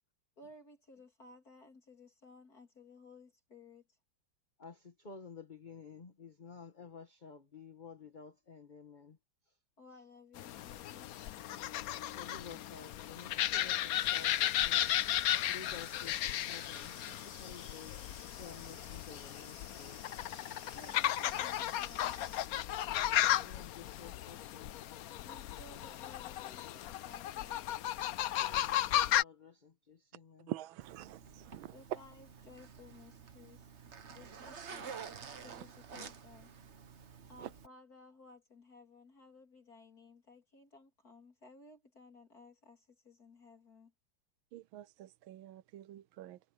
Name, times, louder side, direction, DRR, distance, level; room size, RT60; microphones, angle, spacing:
voice 1, 0.4-3.8 9.8-11.2 20.7-22.3 25.2-27.6 31.7-33.7 34.1-34.9 35.4-36.5 37.3-43.9, left 3 dB, 45° left, 3.4 m, -57 dB
voice 2, 4.6-9.2 9.5-9.6 12.1-14.9 15.5-18.0 18.4-20.0 23.4-24.9 28.4-30.5, left 5 dB, 25° left, 1.6 m, -52 dB
sound 1, 10.4-29.2, left 12 dB, 85° left, 0.8 m, -35 dB
sound 2, 14.0-22.5, left 3 dB, 65° left, 6.2 m, -54 dB
voice 3, 30.5-31.8 35.5-35.6 37.4-37.5 44.5-46.4, right 14 dB, 80° right, 1.4 m, -46 dB
Zipper (clothing), 30.8-37.7, right 6 dB, 40° right, 1.2 m, -50 dB
omnidirectional pair, 2.2 m